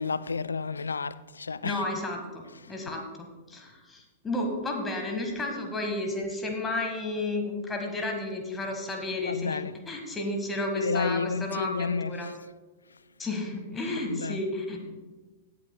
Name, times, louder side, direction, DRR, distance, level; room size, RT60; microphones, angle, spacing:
voice 1, 0.0-1.8 9.3-9.7 10.7-12.3 14.0-14.4, left 4 dB, 75° left, 0.3 m, -31 dB
voice 2, 1.6-9.6 9.9-12.3 13.2-14.9, left 2 dB, 15° left, 1.5 m, -32 dB
17.5 x 8.4 x 2.2 m
figure-of-eight pair, 100°, 0 cm